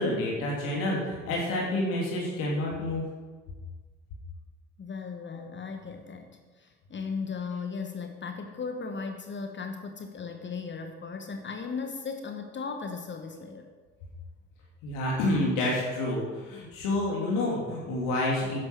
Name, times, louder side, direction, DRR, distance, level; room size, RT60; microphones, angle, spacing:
voice 1, 0.0-3.0 14.8-18.6, left 1 dB, 60° left, -3 dB, 2.9 m, -28 dB
voice 2, 4.8-13.7, left 5 dB, 30° left, 5 dB, 1.4 m, -37 dB
13.0 x 10.5 x 4.7 m, 1.4 s
figure-of-eight pair, 50°, 37 cm